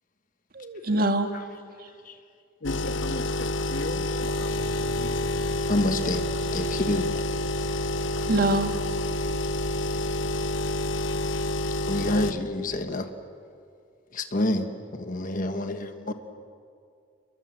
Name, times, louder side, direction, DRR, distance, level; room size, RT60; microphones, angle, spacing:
voice 1, 0.5-1.3 8.2-8.7 9.1-9.4 16.1-16.2, right 2 dB, 50° right, 6 dB, 1.9 m, -25 dB
sound 1, 2.6-12.3, left 1 dB, 90° left, 1.1 m, -28 dB
voice 2, 2.6-5.5, left 2 dB, 75° left, 6 dB, 1.8 m, -38 dB
voice 3, 5.6-7.2 9.2-9.3 11.9-13.1 14.1-16.1, left 1 dB, 45° left, 7 dB, 1.3 m, -28 dB
sound 2, 12.6-13.0, equal, 5° left, 5.5 m, -48 dB
29.5 x 22.0 x 7.7 m, 2.4 s
head